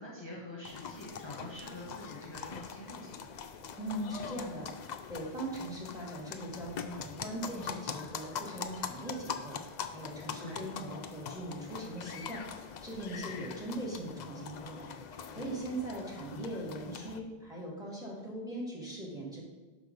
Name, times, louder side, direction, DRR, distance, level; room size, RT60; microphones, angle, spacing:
voice 1, 0.0-3.3 10.3-10.6, left 1 dB, 25° left, -5 dB, 1.6 m, -46 dB
sound 1, 0.6-17.2, left 7 dB, 55° left, 0.5 m, -43 dB
voice 2, 3.8-19.4, right 1 dB, 5° right, -3 dB, 1.9 m, -40 dB
6.2 x 5.3 x 5.3 m, 1.3 s
omnidirectional pair, 1.0 m